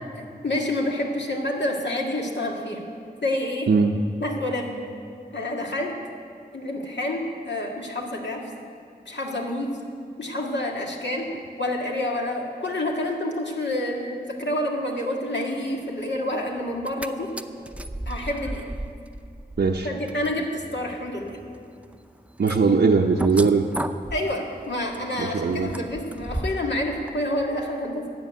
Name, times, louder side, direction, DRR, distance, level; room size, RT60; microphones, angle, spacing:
voice 1, 0.1-2.8 3.2-3.7 4.2-4.7 5.3-5.9 6.5-8.4 9.1-9.8 10.2-11.3 11.6-17.3 18.1-18.6 19.8-21.4 24.1-28.1, left 1 dB, 85° left, -1 dB, 2.0 m, -28 dB
voice 2, 3.7-4.0 19.6-19.9 22.4-23.7 25.2-25.7, right 4 dB, 70° right, 2 dB, 0.7 m, -20 dB
sound 1, 16.7-17.1 17.4-26.7 27.1-27.2, right 1 dB, 5° right, 0.6 m, -36 dB
13.0 x 8.8 x 8.3 m, 2.3 s
wide cardioid pair, 50°, 18 cm